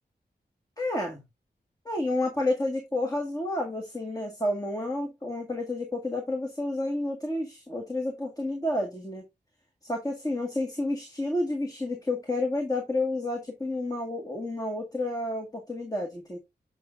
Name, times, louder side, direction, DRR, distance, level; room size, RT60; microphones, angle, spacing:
voice 1, 0.8-1.2 1.9-9.2 9.8-16.4, left 2 dB, 20° left, 1.9 m, -30 dB
8.4 x 6.1 x 2.6 m
wide cardioid pair, 90°, 18 cm